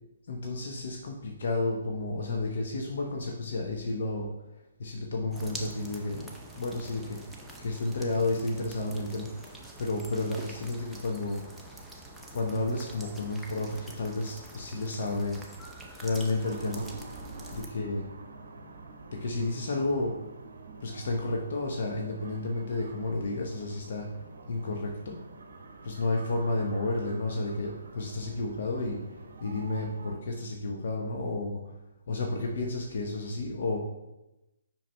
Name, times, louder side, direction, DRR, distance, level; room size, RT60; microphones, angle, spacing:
voice 1, 0.3-4.3 4.8-7.3 7.6-9.3 9.8-11.4 12.3-15.4 16.0-16.9 17.5-18.0 19.1-20.1 20.8-24.1 24.5-25.2 25.8-29.0 29.4-31.6 32.1-33.8, left 2 dB, 55° left, 1 dB, 0.8 m, -31 dB
sound 1, 5.3-17.7, right 1 dB, ahead, 0.7 m, -46 dB
sound 2, 16.4-30.1, right 3 dB, 60° right, 0.8 m, -47 dB
7.4 x 5.7 x 2.2 m, 0.98 s
figure-of-eight pair, 135°, 0 cm